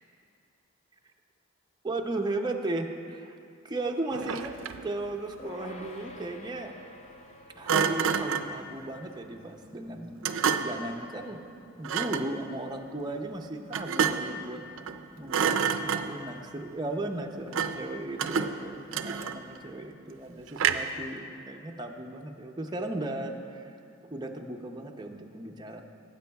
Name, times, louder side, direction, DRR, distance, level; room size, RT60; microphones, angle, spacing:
voice 1, 1.8-3.4 3.6-4.5 4.8-6.7 7.6-10.3 10.6-11.5 11.8-23.8 24.0-25.8, right 2 dB, 20° right, 3 dB, 0.5 m, -36 dB
Thump thud, 4.1-4.9 7.7-8.6 10.2-10.9 11.8-12.3 13.7-14.4 14.8-15.0 15.3-16.3 17.5-17.9 18.2-19.6 20.6-21.0, right 7 dB, 70° right, 0.4 m, -28 dB
sound 1, 5.4-15.1, left 2 dB, 35° left, 0.5 m, -52 dB
18.0 x 8.1 x 2.3 m, 2.5 s
head